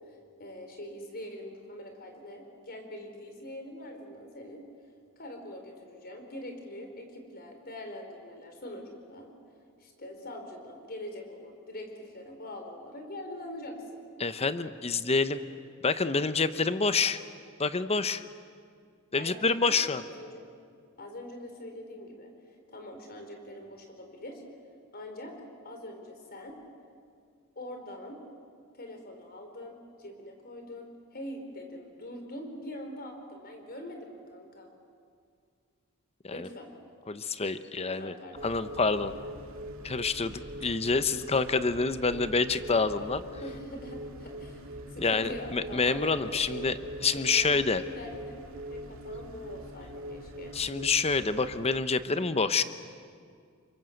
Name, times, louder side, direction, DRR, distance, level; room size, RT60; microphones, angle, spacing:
voice 1, 0.4-4.6 5.2-9.3 9.8-14.0 16.8-16.9 19.1-20.4 21.0-22.3 22.7-24.4 24.9-25.4 25.6-26.6 27.6-28.2 28.7-34.7 36.3-36.7 37.8-38.5 43.4-46.0 46.3-46.7 47.0-50.6, left 1 dB, 45° left, 4 dB, 4.4 m, -43 dB
voice 2, 14.2-15.4 15.8-17.2 17.6-18.2 19.1-20.0 36.2-36.5 37.1-38.1 38.4-39.2 39.8-43.2 45.0-46.8 47.0-47.8 50.5-52.6, left 4 dB, 30° left, 11 dB, 0.9 m, -27 dB
sound 1, 38.3-51.8, right 1 dB, 65° right, 2.5 m, -42 dB
28.5 x 24.5 x 8.0 m, 2.2 s
head